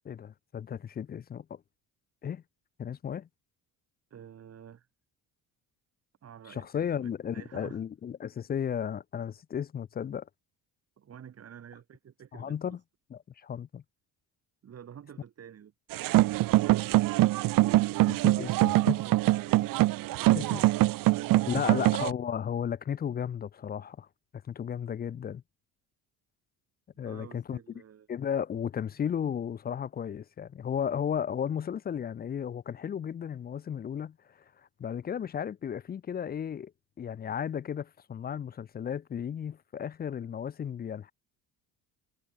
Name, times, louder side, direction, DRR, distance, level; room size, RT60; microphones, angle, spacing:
voice 1, 0.0-1.6 2.2-2.4 2.8-3.3 6.5-10.3 12.3-12.8 13.1-13.8 18.1-19.0 20.3-20.6 21.5-24.1 24.5-25.4 27.0-27.6 28.1-34.4 34.8-36.7 37.0-41.1, left 8 dB, 25° left, 0.5 m, -34 dB
voice 2, 4.1-4.9 6.2-7.8 11.0-12.8 14.6-15.7 18.7-21.9 27.0-28.1, right 9 dB, 40° right, 3.1 m, -49 dB
sound 1, 15.9-22.1, right 17 dB, 65° right, 0.8 m, -24 dB
cardioid pair, 120°, 36 cm